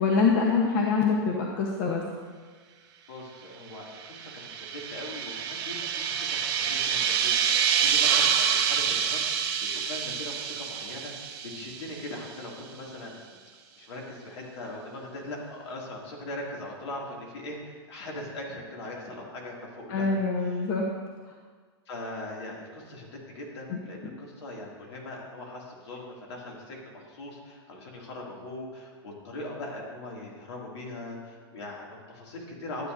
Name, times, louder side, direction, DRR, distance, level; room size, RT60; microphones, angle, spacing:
voice 1, 0.0-2.0 19.9-20.8 23.7-23.8, left 4 dB, 45° left, -1 dB, 1.0 m, -25 dB
voice 2, 3.1-13.4 13.8-20.7 21.9-32.9, left 1 dB, 75° left, -2 dB, 2.5 m, -40 dB
sound 1, 3.9-12.3, right 7 dB, 55° right, 1.2 m, -27 dB
12.5 x 8.2 x 2.6 m, 1.5 s
hypercardioid pair, 140°, 14 cm